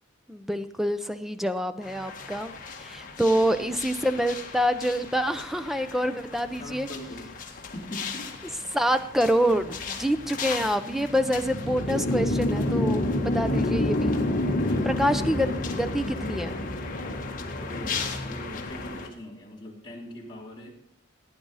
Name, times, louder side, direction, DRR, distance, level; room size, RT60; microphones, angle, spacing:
voice 1, 0.3-2.5 2.8-6.9 8.7-14.1 14.8-16.5, equal, ahead, 10 dB, 0.6 m, -26 dB
sound 1, 1.8-19.1, left 2 dB, 45° left, 1.7 m, -31 dB
voice 2, 3.3-3.7 6.6-8.4 13.4-13.9 14.5-15.1 17.6-20.7, equal, 25° left, -4 dB, 3.3 m, -40 dB
16.0 x 9.4 x 4.1 m, 0.68 s
head